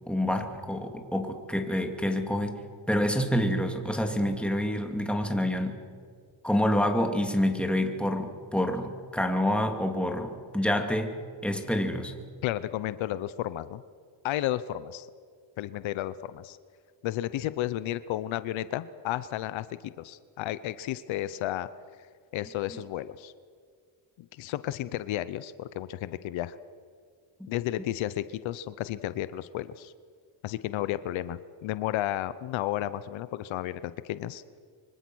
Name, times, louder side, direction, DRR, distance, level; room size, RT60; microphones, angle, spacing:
voice 1, 0.1-2.6 2.9-5.8 6.4-11.1 11.4-12.1, left 1 dB, ahead, 4 dB, 2.9 m, -27 dB
voice 2, 12.4-13.8 14.2-15.1 15.6-16.6 17.0-21.7 22.3-23.3 24.2-26.6 27.5-29.9 30.4-34.4, left 13 dB, 85° left, 15 dB, 0.9 m, -32 dB
25.0 x 24.5 x 6.3 m, 2.1 s
cardioid pair, 100°, 45 cm